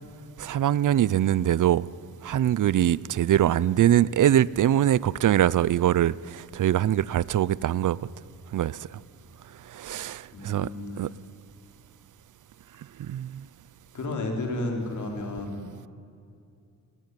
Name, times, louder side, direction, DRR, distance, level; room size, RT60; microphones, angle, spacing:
voice 1, 0.4-1.9 2.2-8.0 8.5-8.8 9.7-10.7 11.0-11.1 13.0-13.4, right 11 dB, 65° right, 0.5 m, -23 dB
voice 2, 10.3-11.1 13.9-15.9, left 2 dB, 60° left, 4.6 m, -32 dB
26.5 x 18.5 x 9.8 m
wide cardioid pair, 165°, 33 cm